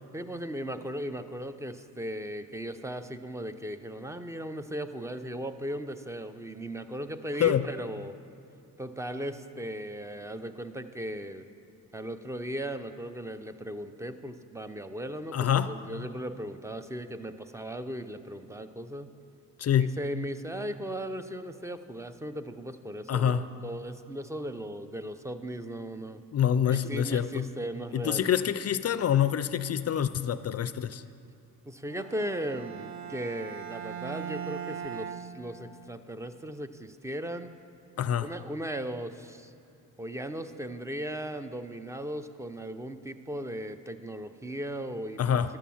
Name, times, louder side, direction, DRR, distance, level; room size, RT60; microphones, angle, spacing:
voice 1, 0.1-8.2 8.8-11.4 11.9-19.1 19.8-26.2 26.6-28.3 31.7-37.6 38.2-39.5 40.0-45.6, right 1 dB, 10° right, 10 dB, 0.5 m, -37 dB
voice 2, 15.3-15.7 19.6-20.0 23.1-23.5 26.3-27.5 27.9-31.0 38.0-38.3 45.2-45.5, left 9 dB, 45° left, 13 dB, 0.4 m, -26 dB
Bowed string instrument, 31.9-36.0, right 8 dB, 50° right, 0.9 m, -40 dB
11.5 x 7.3 x 7.1 m, 2.7 s
cardioid pair, 95°, 35 cm